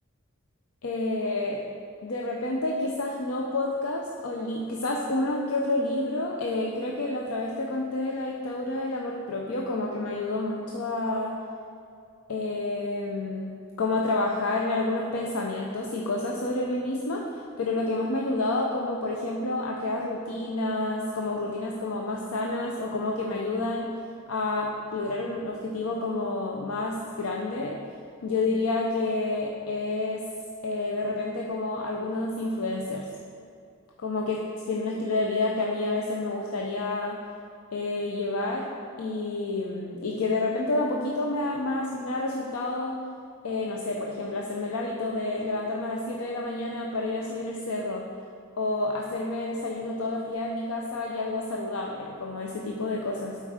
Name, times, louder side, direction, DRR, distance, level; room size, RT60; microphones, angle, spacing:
voice 1, 0.8-1.6 2.0-11.4 12.3-23.9 24.3-27.8 28.2-30.3 30.6-33.1 34.0-37.2 37.7-43.0 43.4-48.1 48.6-53.4, left 2 dB, 80° left, -1 dB, 0.6 m, -29 dB
8.1 x 4.5 x 4.9 m, 2.4 s
head